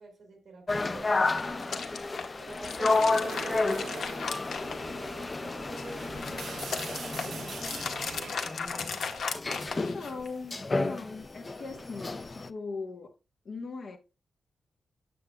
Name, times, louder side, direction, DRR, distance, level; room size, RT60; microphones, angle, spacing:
voice 1, 0.0-1.8 2.4-6.1 6.4-9.2 9.5-10.3 11.6-11.8, right 3 dB, 50° right, 2.8 m, -49 dB
sound 1, 0.7-12.5, left 3 dB, 25° left, 0.4 m, -31 dB
sound 2, 1.2-5.3 5.6-10.3, left 5 dB, 85° left, 1.3 m, -37 dB
sound 3, 2.9-8.5, right 7 dB, 70° right, 0.4 m, -43 dB
voice 2, 9.9-13.1 13.4-14.0, left 4 dB, 55° left, 1.2 m, -40 dB
8.8 x 7.6 x 2.3 m
wide cardioid pair, 155°, 0 cm